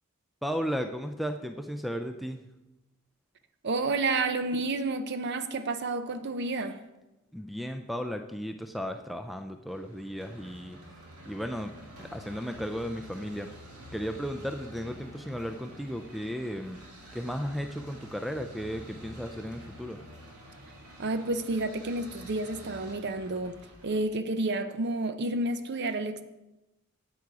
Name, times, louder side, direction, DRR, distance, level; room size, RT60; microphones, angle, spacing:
voice 1, 0.4-2.4 7.3-10.8 11.3-11.7 12.0-13.5 13.9-16.8 17.1-20.0, equal, ahead, 0.3 m, -35 dB
voice 2, 3.6-6.8 21.0-26.2, right 2 dB, 50° right, 0.6 m, -30 dB
sound 1, 9.7-24.0, equal, 85° right, 1.9 m, -48 dB
8.6 x 8.2 x 4.7 m
head